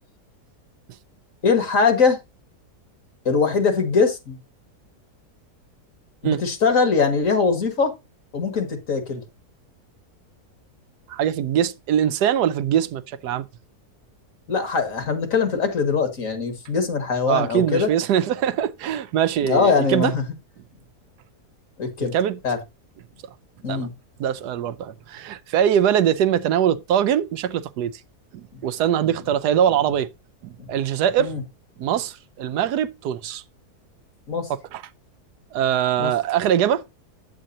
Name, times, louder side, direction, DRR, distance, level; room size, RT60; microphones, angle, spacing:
voice 1, 1.4-2.2 3.3-4.4 6.2-7.9 8.3-9.2 14.5-17.9 19.4-20.2 21.8-22.1 22.4-22.6 23.6-23.9 31.2-31.4 34.3-34.5 36.0-36.1, left 5 dB, 55° left, 2.0 m, -21 dB
voice 2, 11.1-13.5 17.3-20.1 22.1-22.4 23.7-23.9 24.2-28.0 28.3-30.1 30.4-31.3 31.8-33.4 34.7-34.8 35.5-36.8, right 9 dB, 80° right, 1.2 m, -22 dB
8.8 x 8.2 x 2.7 m
omnidirectional pair, 1.7 m